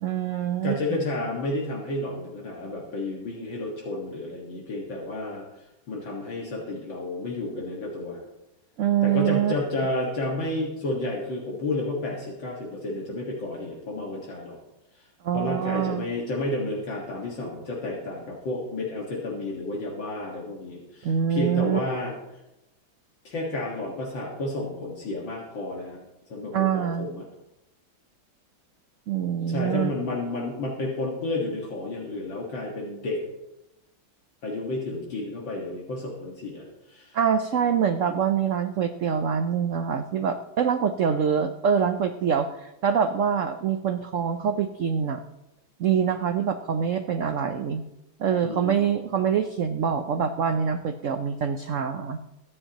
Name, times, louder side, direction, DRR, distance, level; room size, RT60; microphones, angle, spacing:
voice 1, 0.0-0.8 8.8-9.5 15.2-16.1 21.0-21.8 26.5-27.1 29.1-29.9 37.1-45.2 45.8-47.8 48.2-52.2, right 7 dB, 85° right, 8 dB, 0.6 m, -25 dB
voice 2, 0.6-5.4 5.9-8.2 9.0-14.6 15.3-22.1 23.2-26.0 26.3-27.3 29.5-33.2 34.4-37.1 48.4-48.9, left 2 dB, 70° left, -3 dB, 2.5 m, -31 dB
22.0 x 9.8 x 3.0 m, 0.93 s
omnidirectional pair, 2.2 m